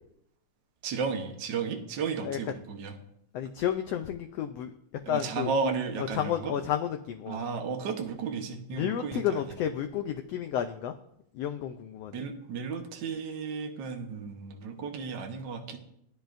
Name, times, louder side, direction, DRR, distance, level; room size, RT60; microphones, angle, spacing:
voice 1, 0.8-2.9 5.0-6.5 7.3-9.3 12.1-15.8, right 5 dB, 75° right, 3 dB, 1.0 m, -33 dB
voice 2, 3.3-4.7 5.1-5.5 6.0-7.4 8.7-10.9 11.3-12.2, left 10 dB, 90° left, 7 dB, 1.4 m, -31 dB
16.5 x 10.5 x 2.6 m, 0.75 s
omnidirectional pair, 3.5 m